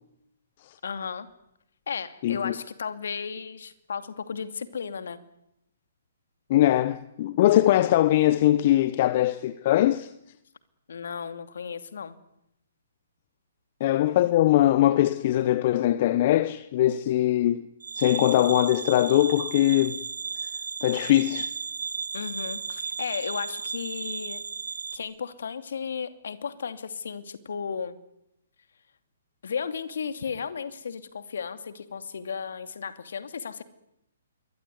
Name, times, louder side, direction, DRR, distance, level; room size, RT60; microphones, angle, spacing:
voice 1, 0.8-1.3 1.9-5.2 10.9-12.2 22.1-24.4 24.9-28.0 29.4-33.6, left 6 dB, 65° left, 2.6 m, -34 dB
voice 2, 2.2-2.5 6.5-10.1 13.8-17.7 17.9-20.0 20.8-21.5, left 14 dB, 40° left, 1.0 m, -21 dB
sound 1, 17.8-25.0, right 5 dB, 70° right, 2.8 m, -34 dB
27.0 x 23.0 x 9.6 m
figure-of-eight pair, 130°, 0 cm